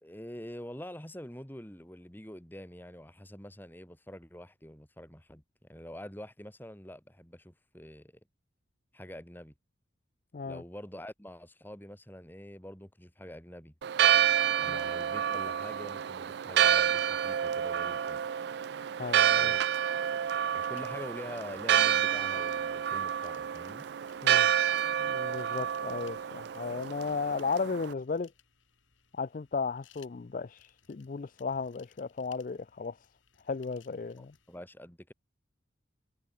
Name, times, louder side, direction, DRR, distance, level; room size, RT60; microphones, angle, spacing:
voice 1, 0.0-5.4 5.7-8.1 8.9-9.5 10.4-13.7 14.6-18.2 19.4-19.6 20.5-23.8 34.2-35.1, equal, 10° left, 2.0 m, -46 dB
Church bell, 13.8-27.9, right 9 dB, 55° right, 0.3 m, -28 dB
voice 2, 19.0-19.5 24.2-24.5 25.0-28.3 29.1-33.0 33.5-34.3, left 4 dB, 40° left, 0.4 m, -35 dB
sound 1, 20.6-34.6, left 9 dB, 75° left, 3.1 m, -64 dB
head